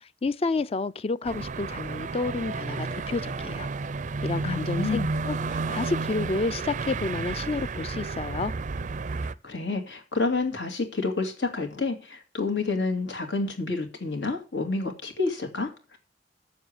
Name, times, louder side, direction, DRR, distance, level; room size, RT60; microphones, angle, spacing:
voice 1, 0.0-3.7 4.2-5.4 5.7-8.5, left 3 dB, 35° left, 0.4 m, -30 dB
sound 1, 1.2-9.3, right 4 dB, 45° right, 0.4 m, -32 dB
voice 2, 4.4-5.1 9.4-16.0, left 3 dB, 85° left, 2.5 m, -29 dB
7.3 x 7.0 x 7.9 m
head